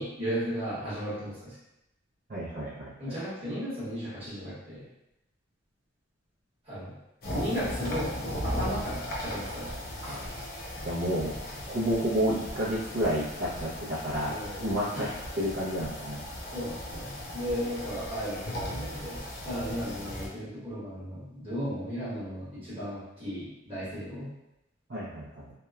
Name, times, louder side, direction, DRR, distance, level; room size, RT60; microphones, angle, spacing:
voice 1, 0.0-1.5 3.0-4.8 6.6-6.9 7.3-8.1 8.4-9.7 10.0-10.3 14.2-14.7 14.9-15.1 16.5-24.3, equal, 30° right, -10 dB, 1.0 m, -35 dB
voice 2, 2.3-3.2 10.1-10.4 10.8-11.3 11.7-15.1 15.4-16.2 24.9-25.5, equal, 45° right, -10 dB, 0.5 m, -30 dB
sound 1, 7.2-20.3, left 1 dB, 50° left, 0.5 m, -37 dB
2.9 x 2.1 x 2.3 m, 0.90 s
head